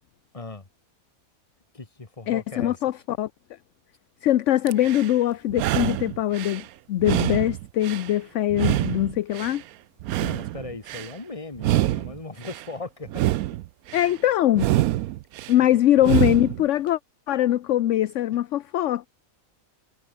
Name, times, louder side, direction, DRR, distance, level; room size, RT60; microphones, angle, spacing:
voice 1, 0.3-0.7 1.7-2.8 10.2-13.2 15.5-15.8, left 3 dB, 25° left, 1.8 m, -38 dB
voice 2, 2.3-3.3 4.2-9.6 13.9-14.7 15.5-17.0 17.3-19.1, left 13 dB, 65° left, 0.9 m, -22 dB
sound 1, 4.7-5.1 5.5-6.6 7.0-8.1 8.5-9.6 10.0-11.1 11.6-12.6 13.1-14.1 14.5-15.5 16.0-16.6, right 15 dB, 80° right, 1.1 m, -26 dB
omnidirectional pair, 1.5 m